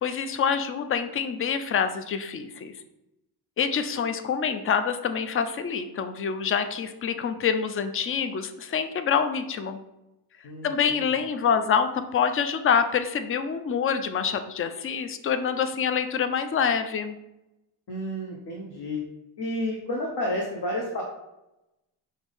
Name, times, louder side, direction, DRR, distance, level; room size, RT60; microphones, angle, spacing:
voice 1, 0.0-2.7 3.6-9.8 10.6-17.1, left 7 dB, 30° left, 9 dB, 0.4 m, -26 dB
voice 2, 10.4-11.0 17.9-19.0 19.4-21.0, left 1 dB, 55° left, -1 dB, 0.9 m, -31 dB
5.8 x 2.6 x 3.5 m, 0.92 s
cardioid pair, 105°, 46 cm